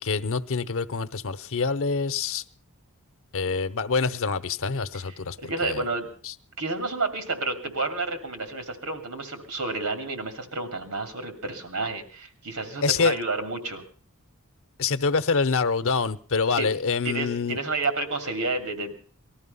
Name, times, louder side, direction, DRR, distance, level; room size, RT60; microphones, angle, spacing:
voice 1, 0.0-2.4 3.3-5.4 5.6-5.8 6.2-6.3 12.8-13.2 14.8-17.6, left 4 dB, 65° left, 0.8 m, -26 dB
voice 2, 5.1-6.1 6.6-13.8 16.6-16.7 17.0-19.0, right 3 dB, 85° right, 2.7 m, -30 dB
19.5 x 13.5 x 5.5 m
head